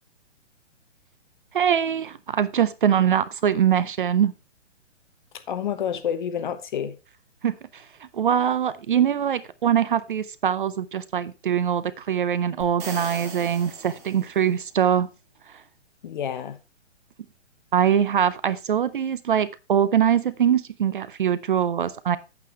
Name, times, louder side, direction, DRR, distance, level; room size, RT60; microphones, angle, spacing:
voice 1, 1.5-4.3 7.4-7.8 8.1-15.1 15.5-15.6 17.7-22.2, right 9 dB, 45° right, 0.5 m, -23 dB
voice 2, 5.3-7.0 16.0-16.6, left 8 dB, 40° left, 1.0 m, -29 dB
sound 1, 12.6-14.7, right 4 dB, 15° right, 2.0 m, -39 dB
8.5 x 8.3 x 3.4 m
hypercardioid pair, 160°, 37 cm